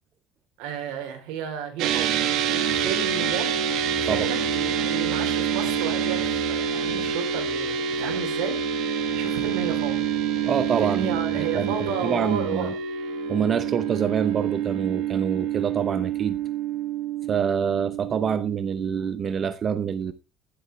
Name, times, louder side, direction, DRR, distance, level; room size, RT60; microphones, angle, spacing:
voice 1, 0.6-2.1 2.5-3.5 4.0-8.6 9.1-10.0 10.8-12.7, right 8 dB, 85° right, 4.0 m, -32 dB
sound 1, 1.8-19.2, right 7 dB, 60° right, 1.8 m, -27 dB
voice 2, 10.5-12.7 13.3-16.4 17.3-20.1, right 7 dB, 30° right, 0.7 m, -26 dB
11.5 x 11.0 x 3.5 m
cardioid pair, 155°, 0 cm